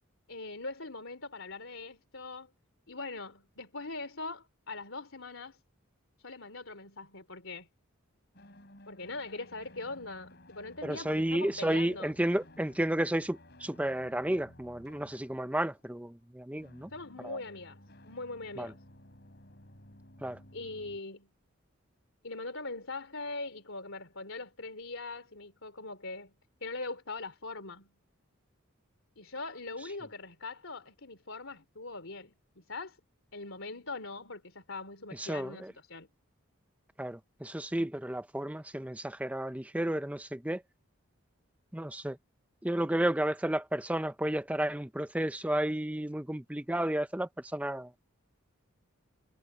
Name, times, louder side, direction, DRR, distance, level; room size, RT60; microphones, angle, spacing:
voice 1, 0.3-2.5 2.9-5.6 6.2-7.7 8.9-12.1 16.9-18.8 20.5-21.3 22.2-26.3 26.6-27.9 29.2-33.0 33.3-36.1, left 3 dB, 65° left, 3.3 m, -41 dB
sound 1, 8.3-16.3 16.6-21.0, left 1 dB, 50° left, 3.9 m, -56 dB
voice 2, 10.8-16.9 17.2-17.4 18.6-18.7 20.2-20.4 35.2-35.7 37.0-40.6 41.7-42.2 42.6-47.9, right 1 dB, 5° right, 0.6 m, -32 dB
head